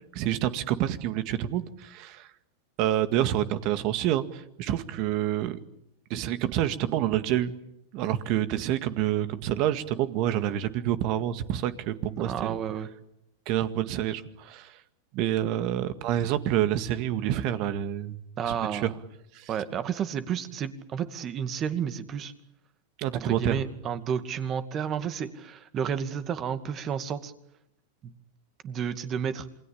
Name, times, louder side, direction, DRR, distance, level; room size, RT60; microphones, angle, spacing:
voice 1, 0.1-2.3 2.8-5.6 6.1-7.5 7.9-12.6 13.5-14.8 15.1-18.2 18.5-18.9 19.3-19.5 23.0-23.6, right 12 dB, 50° right, 11 dB, 2.0 m, -28 dB
voice 2, 12.2-12.9 18.4-19.0 19.5-22.3 23.1-27.3 28.0-28.1 28.6-29.5, right 8 dB, 35° right, 10 dB, 2.3 m, -31 dB
27.5 x 21.0 x 8.7 m, 0.80 s
hypercardioid pair, 115°, 0 cm